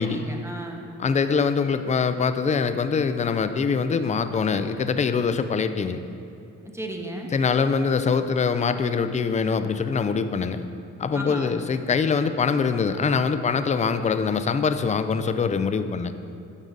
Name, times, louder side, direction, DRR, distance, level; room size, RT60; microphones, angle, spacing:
voice 1, 0.0-0.9 6.6-7.3 11.1-11.6, right 1 dB, 10° right, 1 dB, 0.9 m, -34 dB
voice 2, 1.0-6.0 7.3-10.6 11.0-16.1, left 5 dB, 25° left, 10 dB, 0.4 m, -23 dB
9.2 x 6.1 x 4.0 m, 2.8 s
cardioid pair, 90°, 30 cm